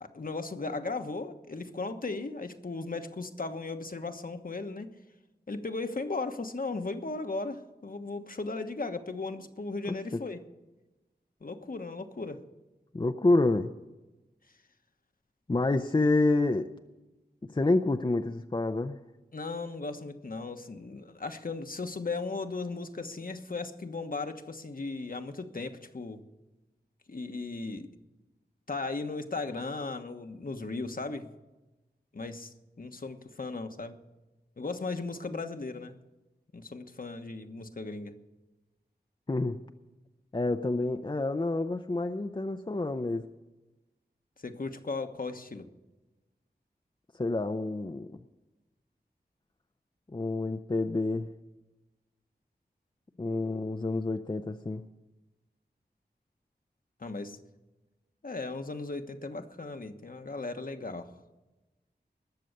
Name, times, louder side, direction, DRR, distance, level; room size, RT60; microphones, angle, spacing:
voice 1, 0.0-4.9 5.5-10.4 11.4-12.4 19.3-26.2 27.1-27.9 28.7-31.3 32.1-34.0 34.6-36.0 36.5-38.2 44.4-45.7 57.0-57.4 58.2-61.1, left 3 dB, 55° left, 7 dB, 1.2 m, -36 dB
voice 2, 12.9-13.7 15.5-16.7 17.5-19.0 39.3-39.6 40.3-43.2 47.2-48.1 50.1-51.3 53.2-54.8, left 2 dB, 25° left, 7 dB, 0.6 m, -28 dB
20.0 x 6.9 x 6.6 m, 1.1 s
wide cardioid pair, 50°, 17 cm